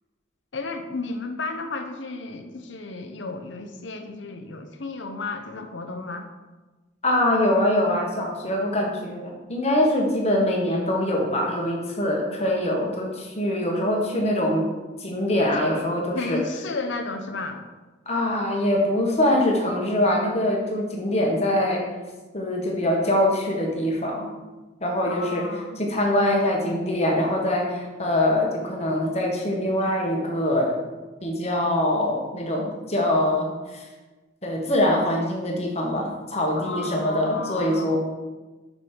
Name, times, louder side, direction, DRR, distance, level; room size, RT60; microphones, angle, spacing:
voice 1, 0.5-6.3 16.1-17.6 25.1-25.8 36.6-38.0, left 3 dB, 80° left, 6 dB, 0.8 m, -33 dB
voice 2, 7.0-14.7 15.0-16.4 18.0-21.8 22.3-24.3 24.8-25.5 25.8-30.8 31.2-33.9 34.4-38.0, left 1 dB, 35° left, -1 dB, 1.5 m, -23 dB
6.2 x 5.3 x 5.7 m, 1.2 s
head